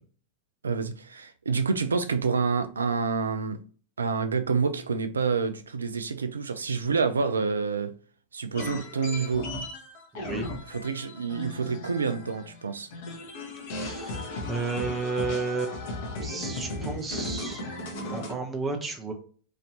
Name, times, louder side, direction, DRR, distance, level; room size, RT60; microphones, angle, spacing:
voice 1, 0.6-3.6 4.0-7.9 8.3-9.5 10.7-12.9, right 5 dB, 75° right, 0.3 m, -28 dB
sound 1, 8.5-12.6 12.9-18.3, left 2 dB, 55° left, 0.9 m, -36 dB
voice 2, 10.1-10.5 13.7-14.2 14.4-17.6 18.1-19.1, right 4 dB, 15° right, 0.7 m, -32 dB
3.1 x 2.6 x 2.6 m
figure-of-eight pair, 90°, 0 cm